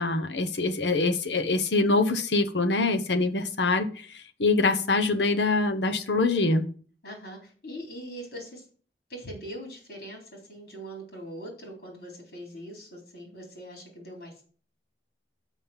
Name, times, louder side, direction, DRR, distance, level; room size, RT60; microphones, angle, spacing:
voice 1, 0.0-3.9 4.4-6.7, left 3 dB, 90° left, 8 dB, 1.0 m, -24 dB
voice 2, 7.0-8.7 9.1-14.4, equal, 65° left, 1 dB, 3.6 m, -42 dB
6.3 x 5.7 x 7.2 m, 0.43 s
head